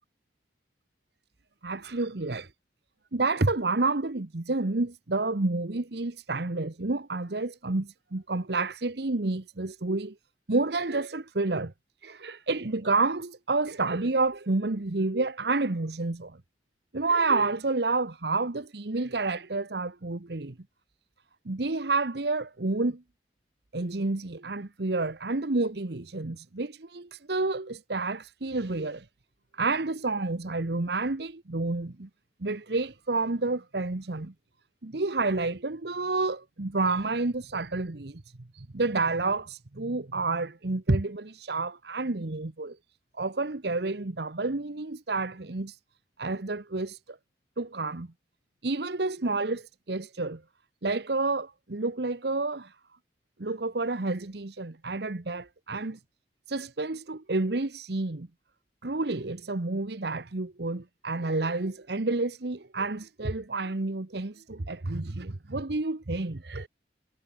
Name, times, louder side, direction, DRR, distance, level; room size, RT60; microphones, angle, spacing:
voice 1, 1.6-2.5 3.1-10.1 10.5-11.7 12.0-16.4 16.9-20.5 21.5-23.0 23.7-29.0 29.6-32.1 32.4-34.3 34.8-38.2 38.5-42.8 43.2-45.8 46.2-47.2 47.6-48.1 48.6-50.4 50.8-52.7 53.4-56.0 56.5-58.3 58.8-66.7, right 3 dB, 60° right, 1.1 m, -29 dB
head